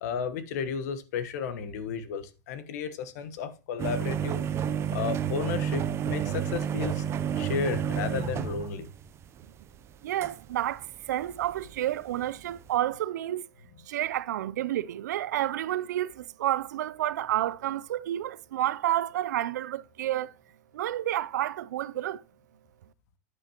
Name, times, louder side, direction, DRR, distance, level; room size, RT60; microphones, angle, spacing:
voice 1, 0.0-4.4 4.9-7.0 7.4-8.9, left 6 dB, 65° left, 1.2 m, -33 dB
sound 1, 3.8-9.6 10.2-11.8 12.0-12.2 12.5-12.7, right 9 dB, 30° right, 0.6 m, -30 dB
voice 2, 10.0-13.4 13.9-20.3 20.7-22.2, right 13 dB, 80° right, 0.5 m, -30 dB
9.7 x 8.8 x 3.0 m
hypercardioid pair, 120°, 9 cm